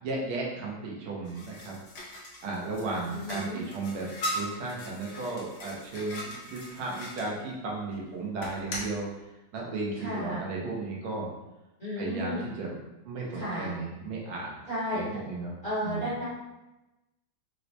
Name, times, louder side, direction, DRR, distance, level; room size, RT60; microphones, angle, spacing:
voice 1, 0.0-1.8 2.4-9.1 9.5-11.3 12.0-12.8 13.1-14.6 14.9-15.6 15.8-16.1, right 3 dB, 85° right, -3 dB, 1.6 m, -35 dB
sound 1, 1.2-7.3 8.4-9.0, equal, 80° left, 0.6 m, -39 dB
voice 2, 3.1-3.6 10.0-10.4 11.8-12.4 13.3-13.7 14.7-15.0 15.6-16.3, equal, 35° left, -11 dB, 0.9 m, -33 dB
4.5 x 2.1 x 2.7 m, 0.99 s
omnidirectional pair, 2.2 m